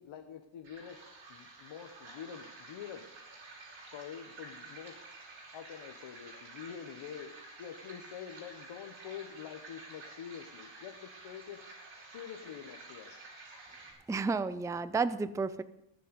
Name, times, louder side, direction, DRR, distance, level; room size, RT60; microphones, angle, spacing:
voice 1, 0.0-3.1 3.9-5.0 5.5-7.3 7.6-11.6 12.0-13.2, left 8 dB, 80° left, 4 dB, 1.2 m, -46 dB
sound 1, 0.6-13.9, right 3 dB, 70° right, 6.0 m, -51 dB
voice 2, 14.1-15.6, right 4 dB, 5° right, 15 dB, 0.4 m, -31 dB
20.0 x 7.7 x 5.3 m, 0.82 s
cardioid pair, 115°, 47 cm